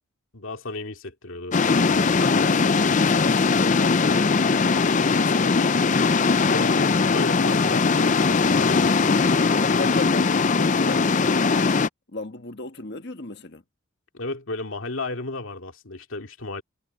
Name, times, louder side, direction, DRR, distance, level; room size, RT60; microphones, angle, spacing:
voice 1, 0.3-2.3 6.5-8.9 14.1-16.6, left 2 dB, 70° left, 2.3 m, -34 dB
sound 1, 1.5-11.9, left 4 dB, 35° left, 0.5 m, -20 dB
voice 2, 2.2-5.8 9.6-11.8 12.1-13.6, left 2 dB, 50° left, 1.5 m, -36 dB
head